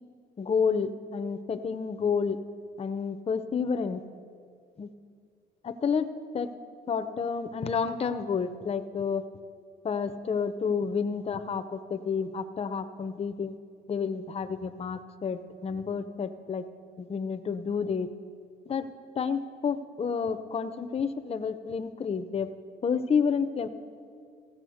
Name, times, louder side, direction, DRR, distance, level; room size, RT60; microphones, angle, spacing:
voice 1, 0.4-2.4 2.8-4.0 4.8-4.9 5.6-6.1 6.3-6.5 6.9-9.2 9.8-13.5 13.9-16.7 17.0-18.1 18.7-18.9 19.2-22.5 22.8-23.7, left 6 dB, 30° left, 10 dB, 0.6 m, -30 dB
15.5 x 7.4 x 6.3 m, 2.2 s
cardioid pair, 90°, 20 cm